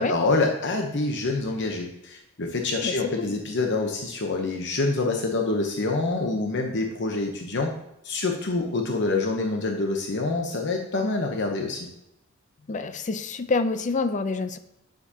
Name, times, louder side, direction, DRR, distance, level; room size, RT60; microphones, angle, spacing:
voice 1, 0.0-7.7 8.0-11.9, left 3 dB, 60° left, 2 dB, 0.9 m, -26 dB
voice 2, 2.8-3.3 12.7-14.6, left 3 dB, 35° left, 11 dB, 0.5 m, -27 dB
8.9 x 7.1 x 2.8 m, 0.82 s
head